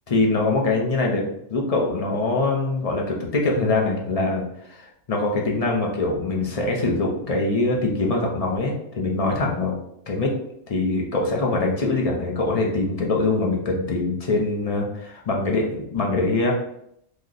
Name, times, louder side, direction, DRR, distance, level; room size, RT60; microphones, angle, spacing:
voice 1, 0.1-9.7 10.1-10.3 10.7-16.5, left 2 dB, 40° left, -1 dB, 0.6 m, -23 dB
3.0 x 2.1 x 3.7 m, 0.73 s
omnidirectional pair, 1.2 m